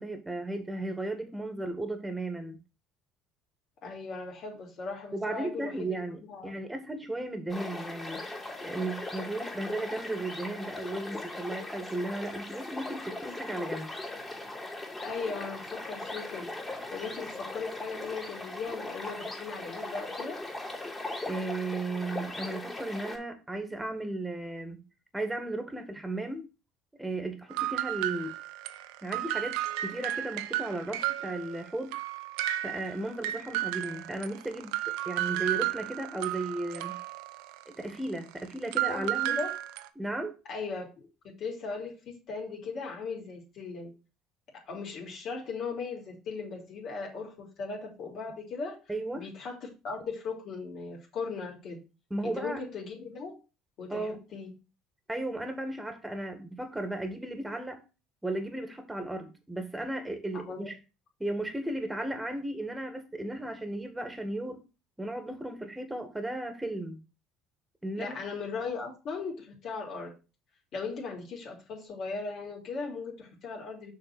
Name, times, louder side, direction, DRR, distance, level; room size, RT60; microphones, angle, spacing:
voice 1, 0.0-2.6 5.1-8.2 8.6-13.9 21.3-24.8 25.1-26.5 27.0-28.4 29.0-31.9 32.6-37.0 37.7-39.4 40.0-40.4 48.9-49.3 52.1-52.6 53.9-54.2 55.1-57.8 58.2-60.8 61.2-64.6 65.0-67.0 67.8-68.2, right 2 dB, 10° right, 1.9 m, -35 dB
voice 2, 3.8-6.6 15.0-16.5 16.9-20.4 38.9-39.5 40.5-43.9 44.5-48.8 49.1-51.8 52.2-53.4 53.8-54.5 60.3-60.7 68.0-70.1 70.7-73.9, left 4 dB, 55° left, 3.1 m, -38 dB
sound 1, 7.5-23.2, left 2 dB, 20° left, 3.0 m, -39 dB
sound 2, 27.5-31.7 31.9-39.9, right 14 dB, 75° right, 0.6 m, -33 dB
6.4 x 4.1 x 6.0 m
hypercardioid pair, 70°, 0 cm